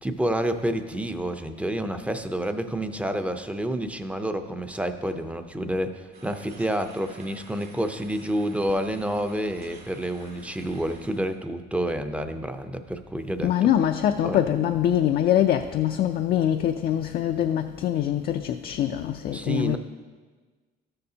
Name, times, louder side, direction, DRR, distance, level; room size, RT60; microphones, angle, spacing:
voice 1, 0.0-13.7 14.2-14.4 19.3-19.8, right 1 dB, 5° right, 0.5 m, -29 dB
sound 1, 6.1-11.4, right 3 dB, 60° right, 2.1 m, -50 dB
voice 2, 13.4-19.8, left 10 dB, 55° left, 0.4 m, -23 dB
13.0 x 6.7 x 2.8 m
cardioid pair, 100°, 19 cm